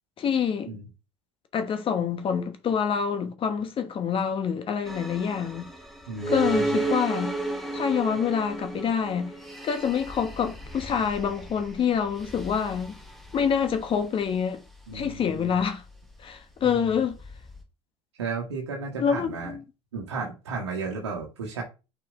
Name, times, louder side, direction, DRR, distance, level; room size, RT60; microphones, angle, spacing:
voice 1, 0.2-0.7 1.5-5.7 6.3-7.3 7.7-9.3 9.6-12.9 13.3-14.6 14.9-15.8 16.2-17.2 19.0-19.6, left 7 dB, 40° left, 1.2 m, -26 dB
sound 1, 4.9-17.6, right 2 dB, ahead, 1.5 m, -34 dB
voice 2, 6.1-6.8 14.9-15.5 16.6-17.0 18.2-19.5 19.9-21.6, right 4 dB, 85° right, 1.2 m, -34 dB
5.9 x 4.3 x 3.7 m
hypercardioid pair, 75°, 14 cm